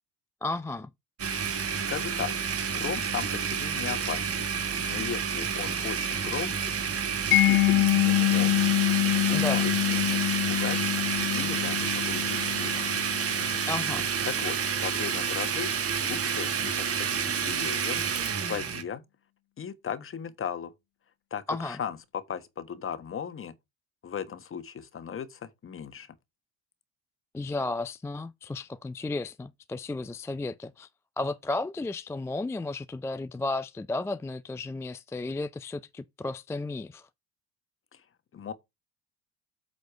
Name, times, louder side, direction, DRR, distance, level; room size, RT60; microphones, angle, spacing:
voice 1, 0.4-0.9 9.3-9.6 13.7-14.1 21.5-21.8 27.3-30.9 31.2-37.1, left 2 dB, 10° left, 0.3 m, -33 dB
Domestic sounds home sounds, 1.2-18.8, right 7 dB, 40° right, 1.7 m, -29 dB
voice 2, 1.7-2.3 2.7-4.5 4.9-6.8 7.3-8.8 9.1-10.8 11.3-12.9 14.2-15.7 16.0-18.0 18.4-19.0 19.6-20.7 21.3-23.5 24.0-26.1 37.9-38.0 38.3-38.5, left 7 dB, 35° left, 1.5 m, -37 dB
Mallet percussion, 7.3-14.1, left 17 dB, 70° left, 0.6 m, -26 dB
8.3 x 4.1 x 4.8 m
supercardioid pair, 90°, 35 cm